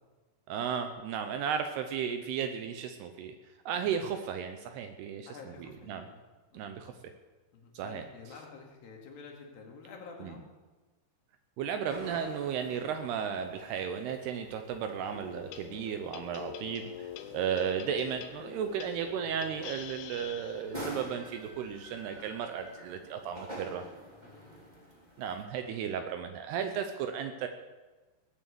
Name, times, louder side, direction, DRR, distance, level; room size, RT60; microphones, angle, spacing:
voice 1, 0.5-3.3 3.7-5.3 5.6-6.1 6.5-6.9 7.7-8.0 10.2-10.3 11.6-23.8 25.2-27.5, right 7 dB, 75° right, 6 dB, 2.5 m, -34 dB
voice 2, 5.3-6.2 6.5-6.7 7.5-10.4 14.8-15.0 16.5-16.6 17.2-17.4 24.2-24.4, left 5 dB, 55° left, 0 dB, 3.5 m, -50 dB
sound 1, 11.9-25.4, right 1 dB, 15° right, 1.4 m, -48 dB
sound 2, 15.0-20.8, left 10 dB, 85° left, 3.0 m, -45 dB
19.0 x 7.6 x 8.0 m, 1.3 s
omnidirectional pair, 5.4 m